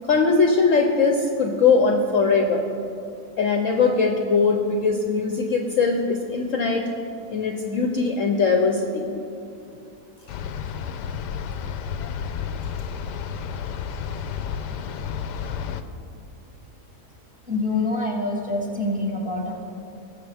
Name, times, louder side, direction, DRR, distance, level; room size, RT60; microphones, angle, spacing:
voice 1, 0.1-2.7 3.4-6.8 7.3-9.1, left 4 dB, 60° left, 3 dB, 1.0 m, -21 dB
sound 1, 10.3-15.8, left 7 dB, 90° left, 1.2 m, -31 dB
voice 2, 17.4-19.5, left 2 dB, 5° right, -1 dB, 1.6 m, -26 dB
19.5 x 7.1 x 3.5 m, 2.6 s
omnidirectional pair, 1.8 m